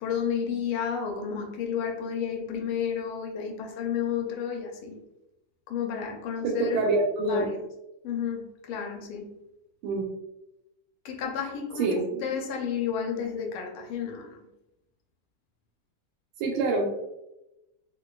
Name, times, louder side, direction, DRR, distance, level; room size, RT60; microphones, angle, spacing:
voice 1, 0.0-5.0 5.7-6.8 7.2-7.5 8.0-9.4 11.0-14.4, left 7 dB, 85° left, 2 dB, 1.5 m, -31 dB
voice 2, 6.4-7.5 9.8-10.1 11.8-12.0 16.4-16.9, right 2 dB, 85° right, 0 dB, 1.5 m, -25 dB
3.6 x 2.5 x 2.3 m, 0.91 s
omnidirectional pair, 2.3 m